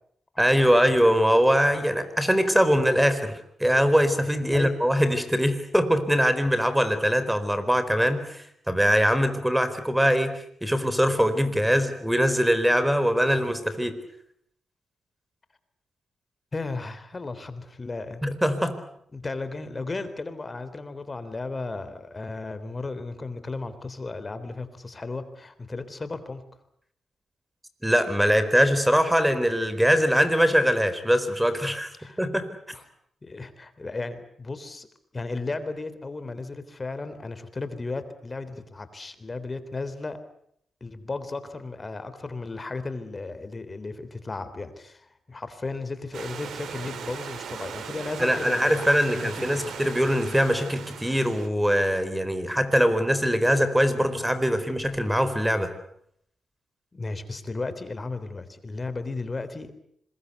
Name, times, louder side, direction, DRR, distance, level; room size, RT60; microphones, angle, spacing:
voice 1, 0.4-13.9 18.2-18.7 27.8-31.9 32.2-32.5 48.2-55.7, equal, 5° right, 12 dB, 4.4 m, -22 dB
voice 2, 16.5-18.4 19.1-26.4 32.0-32.2 32.7-32.8 33.2-34.9 35.1-40.2 40.8-49.7 56.9-59.7, left 3 dB, 35° left, 12 dB, 3.5 m, -35 dB
Stream / Liquid, 46.1-51.5, right 7 dB, 80° right, 2.8 m, -38 dB
26.0 x 21.5 x 8.3 m, 0.70 s
cardioid pair, 65°, 0 cm